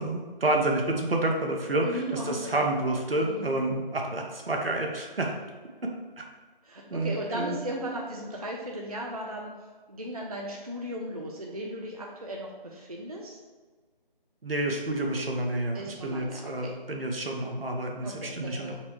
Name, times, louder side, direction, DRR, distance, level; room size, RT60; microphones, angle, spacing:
voice 1, 0.0-5.4 6.2-6.3 6.9-7.6 14.4-18.7, right 2 dB, 75° right, 1 dB, 0.9 m, -29 dB
voice 2, 1.8-2.5 3.2-3.5 6.6-9.5 9.9-13.4 15.7-16.7 18.0-18.7, right 1 dB, 40° right, -1 dB, 0.4 m, -36 dB
4.2 x 2.2 x 4.5 m, 1.4 s
figure-of-eight pair, 160°, 29 cm